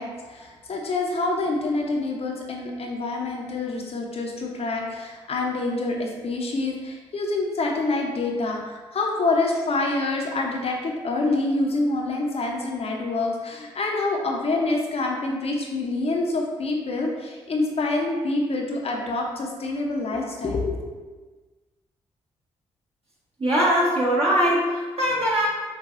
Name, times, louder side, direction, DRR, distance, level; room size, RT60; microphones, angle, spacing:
voice 1, 0.0-20.8, left 2 dB, 50° left, 0 dB, 0.6 m, -26 dB
voice 2, 23.4-25.5, equal, 45° right, -6 dB, 1.5 m, -21 dB
5.4 x 2.3 x 2.5 m, 1.3 s
hypercardioid pair, 40°, 13 cm